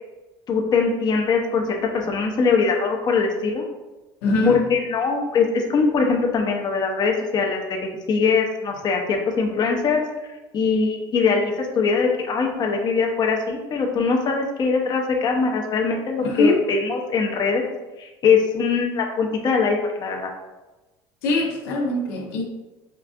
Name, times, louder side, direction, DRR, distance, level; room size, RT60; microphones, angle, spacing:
voice 1, 0.5-1.6 1.9-3.6 4.4-7.8 8.1-10.0 10.5-17.7 18.0-20.3, left 5 dB, 35° left, 1 dB, 0.6 m, -22 dB
voice 2, 4.2-4.6 16.2-16.6 21.2-22.4, left 2 dB, 85° left, 0 dB, 0.7 m, -22 dB
4.5 x 2.4 x 2.4 m, 1.1 s
supercardioid pair, 100°, 11 cm